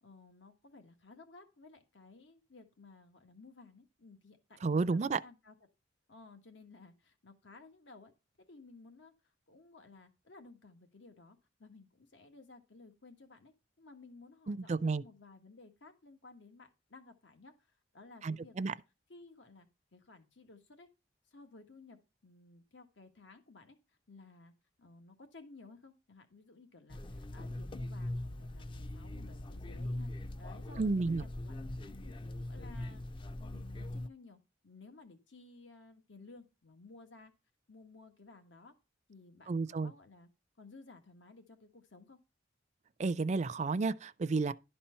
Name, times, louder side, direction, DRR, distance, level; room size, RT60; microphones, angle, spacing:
voice 1, 0.0-5.5 6.1-8.1 8.5-9.1 9.5-13.5 13.8-17.5 17.9-18.8 19.1-20.9 21.3-23.8 24.1-24.5 24.8-32.1 32.5-33.0 33.4-34.4 34.6-37.3 37.7-38.7 39.1-40.3 40.6-42.2, left 3 dB, 80° left, 1.5 m, -56 dB
voice 2, 4.6-5.2 14.5-15.0 18.2-18.7 30.8-31.2 39.5-39.9 43.0-44.5, right 4 dB, 40° right, 0.4 m, -31 dB
sound 1, 26.9-34.1, left 1 dB, 25° left, 0.4 m, -41 dB
11.5 x 4.3 x 5.6 m
head